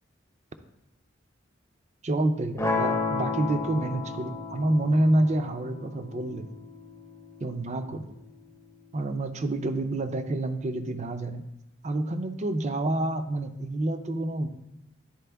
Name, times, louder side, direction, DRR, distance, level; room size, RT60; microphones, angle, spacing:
voice 1, 2.0-6.5 7.4-8.1 8.9-11.5 11.8-14.5, right 1 dB, 35° right, 9 dB, 0.5 m, -28 dB
sound 1, 2.6-8.6, left 4 dB, 15° left, 0.6 m, -33 dB
10.5 x 4.2 x 3.4 m, 0.88 s
head